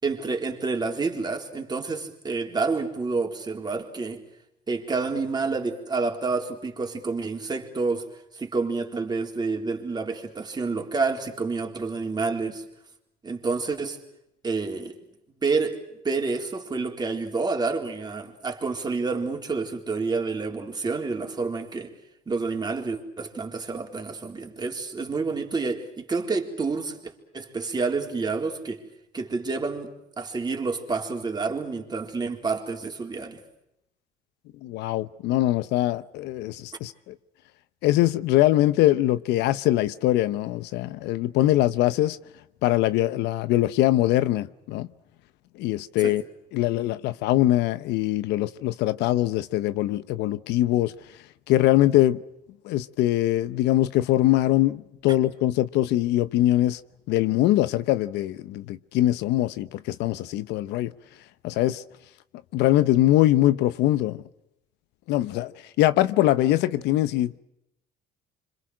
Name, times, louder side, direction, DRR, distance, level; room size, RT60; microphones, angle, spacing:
voice 1, 0.0-4.2 4.7-12.6 13.2-14.0 14.4-15.0 15.4-15.8 16.0-21.9 22.3-28.9 29.1-33.4 46.0-46.2 55.1-55.2, right 4 dB, 25° right, 4.0 m, -29 dB
voice 2, 34.6-37.1 37.8-42.2 42.6-44.9 45.6-46.2 46.5-50.9 51.5-52.2 52.6-56.8 57.1-60.9 61.4-61.8 62.5-64.2 65.1-65.5 65.8-67.4, left 15 dB, 90° left, 0.9 m, -22 dB
27.5 x 26.0 x 6.4 m
cardioid pair, 110°, 17 cm